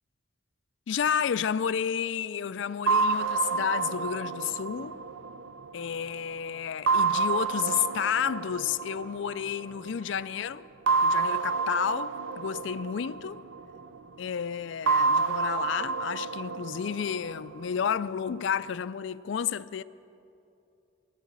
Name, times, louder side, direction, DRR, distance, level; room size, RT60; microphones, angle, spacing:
voice 1, 0.9-5.0 5.7-10.6 11.0-13.4 14.2-19.8, left 8 dB, 65° left, 0.4 m, -31 dB
sound 1, 2.9-6.2 6.9-9.8 10.9-14.0 14.9-18.0, right 4 dB, 75° right, 0.5 m, -29 dB
15.0 x 12.0 x 7.3 m
head